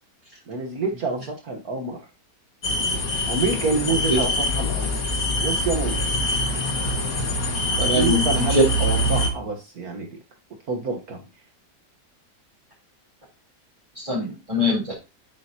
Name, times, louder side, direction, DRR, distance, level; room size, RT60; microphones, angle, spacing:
voice 1, 0.5-2.0 3.3-5.0 5.4-6.4 7.8-10.2 10.7-11.2, right 3 dB, 60° right, 4 dB, 1.7 m, -27 dB
sound 1, 2.6-9.3, left 1 dB, 55° left, 2.0 m, -24 dB
voice 2, 7.8-8.6 14.0-14.9, left 1 dB, 20° right, -4 dB, 3.5 m, -23 dB
11.0 x 8.7 x 2.8 m, 0.27 s
omnidirectional pair, 1.9 m